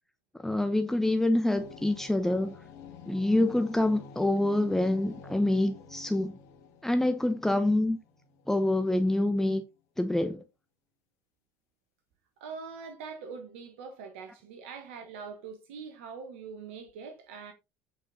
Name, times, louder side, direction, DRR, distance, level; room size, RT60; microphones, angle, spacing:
voice 1, 0.4-2.6 3.1-6.4 6.8-8.0 8.5-9.6 10.0-10.4, left 1 dB, 5° left, 0.9 m, -26 dB
sound 1, 1.5-9.0, left 5 dB, 55° left, 1.8 m, -49 dB
voice 2, 12.4-17.5, right 5 dB, 70° right, 1.3 m, -43 dB
8.8 x 5.1 x 3.9 m
hypercardioid pair, 70°, 7 cm